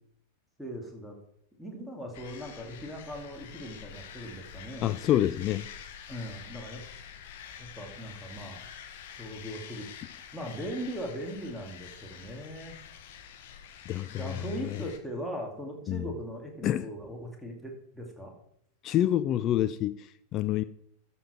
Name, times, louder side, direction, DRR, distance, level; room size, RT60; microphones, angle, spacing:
voice 1, 0.6-1.2 1.6-5.0 6.1-6.8 7.6-8.6 9.2-9.9 10.3-12.8 14.2-18.3, equal, 5° right, 2.5 m, -39 dB
sound 1, 2.1-15.0, left 8 dB, 50° left, 1.1 m, -47 dB
voice 2, 4.8-5.7 13.9-14.4 15.9-16.0 16.6-16.9 18.8-20.6, left 12 dB, 35° left, 0.4 m, -27 dB
13.0 x 6.9 x 4.4 m
figure-of-eight pair, 90°, 0 cm